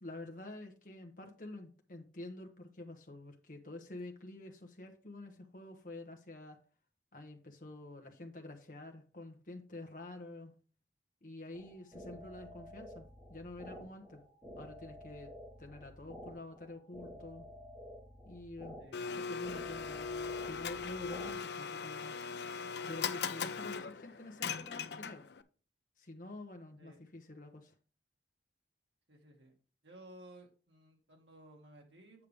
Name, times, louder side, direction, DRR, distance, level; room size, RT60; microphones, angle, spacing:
voice 1, 0.0-6.6 7.1-10.5 11.2-14.2 14.6-15.3 15.6-17.5 18.2-18.8 19.2-22.1 22.9-25.2 26.0-27.7, left 2 dB, 50° left, 1.1 m, -48 dB
sound 1, 11.5-21.3, equal, 20° right, 1.9 m, -51 dB
Domestic sounds home sounds, 18.9-25.4, left 6 dB, 70° left, 0.6 m, -39 dB
voice 2, 29.1-29.5 29.8-32.3, right 1 dB, 85° right, 2.0 m, -56 dB
8.4 x 6.6 x 3.5 m
head